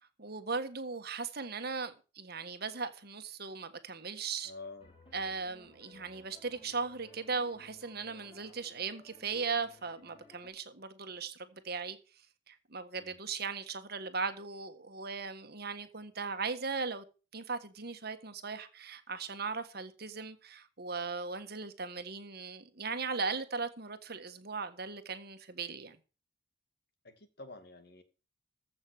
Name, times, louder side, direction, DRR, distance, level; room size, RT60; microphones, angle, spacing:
voice 1, 0.2-4.5 5.1-12.0 12.5-17.0 17.3-26.0, right 4 dB, 55° right, 1.6 m, -38 dB
voice 2, 4.4-5.0 13.0-13.1 27.0-28.0, left 3 dB, 55° left, 2.2 m, -48 dB
sound 1, 4.8-10.5, left 2 dB, 30° left, 6.6 m, -59 dB
15.0 x 5.9 x 6.4 m
head